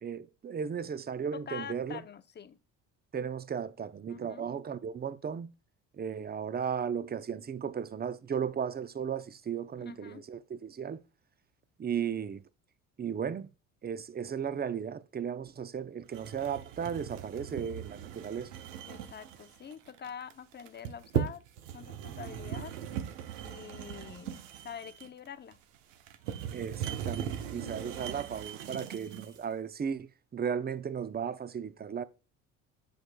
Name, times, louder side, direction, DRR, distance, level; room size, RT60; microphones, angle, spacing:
voice 1, 0.0-2.0 3.1-5.5 6.0-11.0 11.8-12.4 13.0-13.5 13.8-18.5 26.5-32.0, right 7 dB, 25° right, 0.6 m, -35 dB
voice 2, 1.3-2.6 4.1-4.5 9.8-10.2 18.9-21.4 21.7-22.8 23.1-25.6 27.3-27.8, left 7 dB, 25° left, 0.7 m, -45 dB
sound 1, 16.1-29.4, right 9 dB, 80° right, 1.0 m, -39 dB
7.8 x 6.4 x 2.3 m
supercardioid pair, 70°, 37 cm